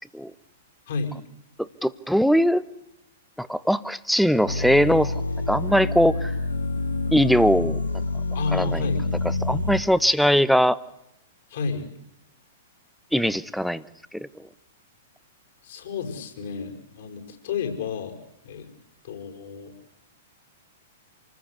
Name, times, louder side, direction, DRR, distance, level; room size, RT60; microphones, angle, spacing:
voice 1, 0.9-1.2 8.3-9.1 11.5-11.9 15.6-18.2 18.4-18.7 19.0-19.7, left 4 dB, 55° left, 4 dB, 6.0 m, -31 dB
voice 2, 1.6-2.6 3.4-5.2 5.5-6.3 7.1-7.8 8.5-8.8 9.4-10.8 13.1-13.8 14.1-14.5, equal, ahead, 17 dB, 1.0 m, -21 dB
sound 1, 4.5-9.8, left 2 dB, 80° left, 1.8 m, -27 dB
28.0 x 20.5 x 8.3 m, 0.82 s
figure-of-eight pair, 105°, 0 cm